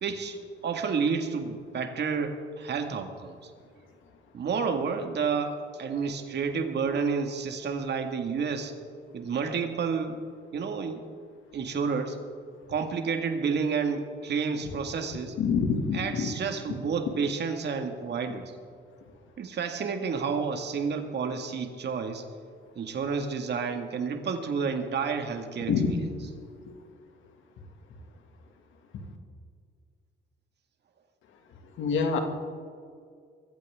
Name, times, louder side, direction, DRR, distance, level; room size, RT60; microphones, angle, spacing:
voice 1, 0.0-3.5 4.3-8.7 9.1-10.2 10.5-11.0 11.5-12.2 12.7-15.4 15.9-18.5 19.4-22.3 22.8-26.0, right 5 dB, 60° right, 5 dB, 1.9 m, -30 dB
voice 2, 15.4-16.3 25.7-25.9 26.7-26.8 31.8-32.2, left 5 dB, 80° left, 4 dB, 2.2 m, -26 dB
22.5 x 15.0 x 3.7 m, 2.1 s
cardioid pair, 90°, 20 cm